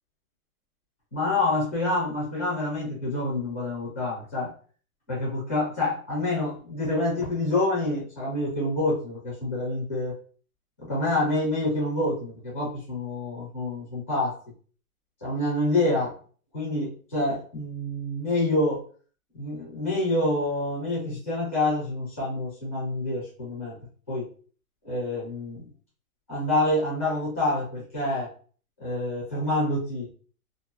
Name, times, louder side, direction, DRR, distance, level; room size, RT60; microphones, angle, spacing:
voice 1, 1.1-4.5 5.1-10.1 10.8-14.4 15.2-16.1 16.5-18.8 19.3-23.8 24.1-24.2 24.8-25.6 26.3-28.3 28.8-30.1, left 2 dB, 10° left, -7 dB, 0.5 m, -27 dB
2.7 x 2.6 x 2.4 m, 0.42 s
hypercardioid pair, 170°, 44 cm